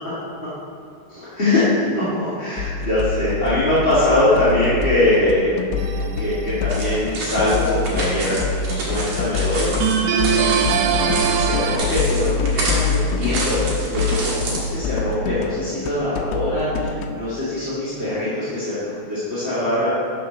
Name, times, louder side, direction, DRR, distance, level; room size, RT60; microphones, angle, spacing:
voice 1, 1.1-5.5 5.9-9.7 10.3-19.9, left 1 dB, 20° left, -14 dB, 1.9 m, -22 dB
sound 1, 2.6-17.1, left 4 dB, 80° left, 2.3 m, -25 dB
sound 2, 5.8-6.4 9.8-11.8, right 8 dB, 90° right, 2.5 m, -21 dB
sound 3, 6.7-14.7, right 2 dB, 55° right, 2.6 m, -29 dB
12.0 x 6.0 x 4.1 m, 2.4 s
omnidirectional pair, 4.3 m